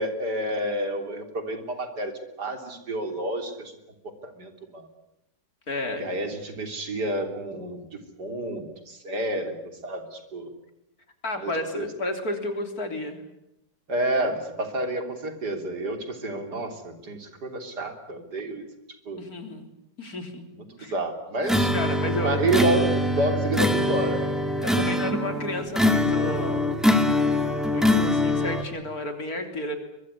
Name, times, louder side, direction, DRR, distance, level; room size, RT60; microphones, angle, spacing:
voice 1, 0.0-3.7 4.0-4.9 6.0-10.5 11.4-11.9 13.9-18.7 19.1-19.2 20.5-21.7 22.2-24.3, right 1 dB, 75° right, 7 dB, 4.0 m, -29 dB
voice 2, 5.7-6.1 11.2-13.2 19.2-19.7 20.0-20.4 20.8-20.9 21.7-22.6 24.6-26.7 27.1-27.3 27.7-29.8, left 1 dB, 60° left, 6 dB, 3.9 m, -31 dB
sound 1, 21.4-28.6, left 1 dB, ahead, 2.4 m, -23 dB
23.5 x 23.0 x 9.8 m, 0.87 s
omnidirectional pair, 1.8 m